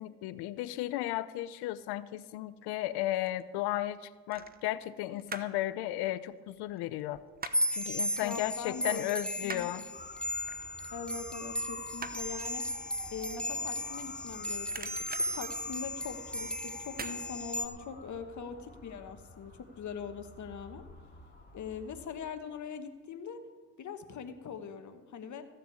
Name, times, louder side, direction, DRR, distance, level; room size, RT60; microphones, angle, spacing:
voice 1, 0.0-4.0 4.3-7.2 7.7-9.8, left 14 dB, 85° left, 16 dB, 0.7 m, -34 dB
sound 1, 2.8-3.4 4.3-5.6 5.9-7.8 8.2-8.3 8.7-14.3 14.6-16.3 16.9-17.2 17.6-17.7, right 5 dB, 25° right, 0.9 m, -45 dB
sound 2, 7.5-17.7, equal, 5° left, 0.9 m, -36 dB
voice 2, 8.2-9.1 9.4-9.7 10.9-12.6 13.1-20.8 21.5-23.4 23.8-25.4, left 6 dB, 50° left, 8 dB, 1.3 m, -42 dB
Motor vehicle (road) / Siren, 9.9-22.2, left 2 dB, 25° left, 2.3 m, -50 dB
14.5 x 6.7 x 8.4 m, 1.4 s
supercardioid pair, 75°, 38 cm